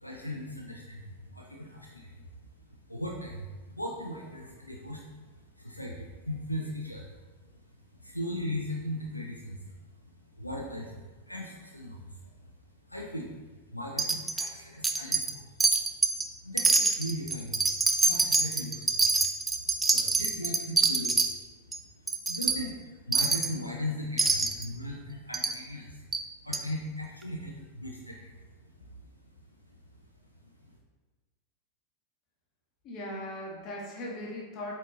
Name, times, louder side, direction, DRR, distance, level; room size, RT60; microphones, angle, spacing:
voice 1, 0.0-2.3 2.6-7.2 7.7-9.8 10.0-12.5 12.9-15.6 16.1-21.4 21.8-26.0 26.4-29.0 30.4-30.8, left 1 dB, 85° left, -1 dB, 0.7 m, -39 dB
Wind chime, 14.0-14.5 14.8-15.3 15.6-16.2 16.6-21.3 21.7-21.8 22.1-22.6 23.1-23.5 24.2-24.6 25.3-25.5 26.1-26.2 26.5-26.6, right 3 dB, 10° right, 0.6 m, -25 dB
voice 2, 32.8-34.8, left 1 dB, 35° left, -1 dB, 1.4 m, -38 dB
8.0 x 4.2 x 3.9 m, 1.3 s
figure-of-eight pair, 90°, 0 cm